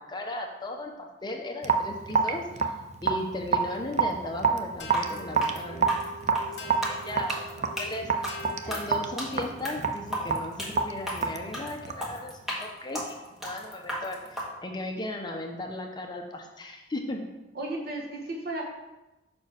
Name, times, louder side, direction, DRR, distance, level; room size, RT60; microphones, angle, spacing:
voice 1, 0.0-2.7 3.0-8.4 8.7-17.2, left 1 dB, 25° left, 2 dB, 0.7 m, -37 dB
Raindrop / Drip, 1.6-12.1, right 5 dB, 40° right, 0.4 m, -28 dB
sound 1, 4.8-9.6, left 1 dB, 70° left, 1.0 m, -44 dB
sound 2, 4.8-14.5, equal, ahead, 1.3 m, -35 dB
voice 2, 8.6-8.9 17.5-18.6, right 2 dB, 55° right, -1 dB, 1.4 m, -35 dB
5.2 x 4.4 x 6.2 m, 1.0 s
head